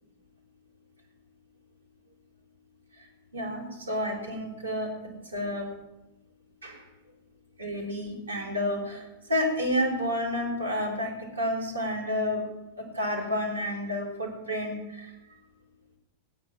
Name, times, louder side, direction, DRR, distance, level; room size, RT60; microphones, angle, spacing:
voice 1, 3.3-4.9 5.3-5.7 6.6-6.8 7.6-12.5 12.8-15.1, left 1 dB, 75° right, -1 dB, 4.2 m, -30 dB
17.5 x 9.6 x 7.5 m, 1.0 s
figure-of-eight pair, 90°, 0 cm